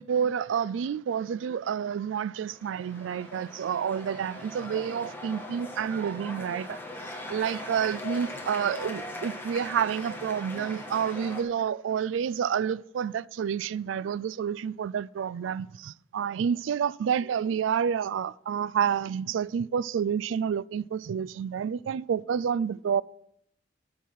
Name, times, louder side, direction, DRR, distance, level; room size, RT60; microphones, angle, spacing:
voice 1, 0.0-6.8 7.3-23.0, right 7 dB, 80° right, 0.3 m, -29 dB
sound 1, 2.5-11.4, left 2 dB, 10° left, 1.4 m, -40 dB
13.0 x 6.1 x 5.5 m
head